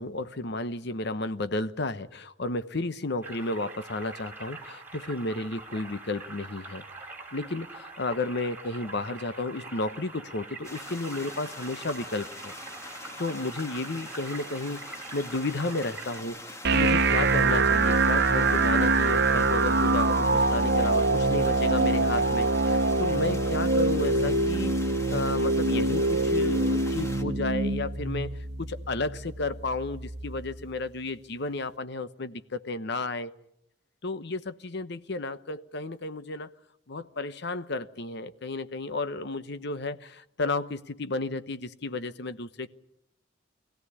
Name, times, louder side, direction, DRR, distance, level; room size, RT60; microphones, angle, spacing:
voice 1, 0.0-6.8 7.3-12.5 13.2-28.3 28.6-33.3 34.0-36.5 36.9-42.7, left 2 dB, 60° left, 12 dB, 1.0 m, -33 dB
sound 1, 3.2-16.2, right 3 dB, 10° right, 4.2 m, -44 dB
sound 2, 10.6-27.2, left 1 dB, 15° left, 2.0 m, -43 dB
sound 3, 16.6-30.6, right 2 dB, 60° right, 1.1 m, -24 dB
22.5 x 16.5 x 9.8 m, 0.81 s
head